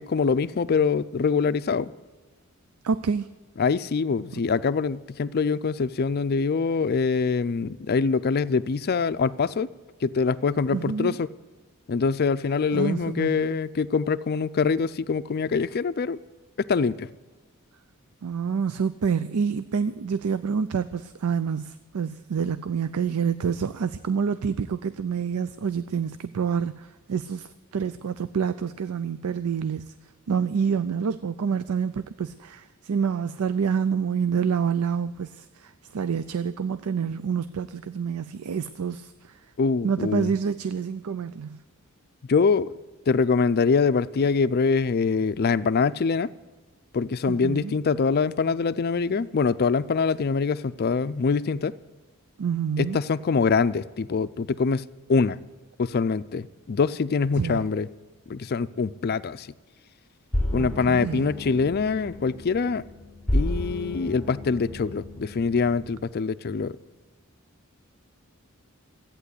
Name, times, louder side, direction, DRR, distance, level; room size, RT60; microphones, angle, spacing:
voice 1, 0.0-1.9 3.6-9.7 10.0-11.3 11.9-16.2 16.6-17.1 39.6-40.3 42.3-42.7 43.1-46.3 46.9-51.7 52.8-55.4 55.8-57.9 58.3-59.5 60.5-62.8 63.3-66.8, left 5 dB, 45° left, 0.4 m, -24 dB
voice 2, 2.8-3.3 10.7-11.2 12.7-13.4 18.2-29.9 30.3-39.4 39.8-41.6 47.3-47.7 52.4-53.0 57.4-57.7 60.6-61.3, right 6 dB, 85° right, 0.4 m, -27 dB
sound 1, 60.3-66.0, left 1 dB, 5° left, 1.1 m, -31 dB
14.0 x 9.0 x 8.3 m
head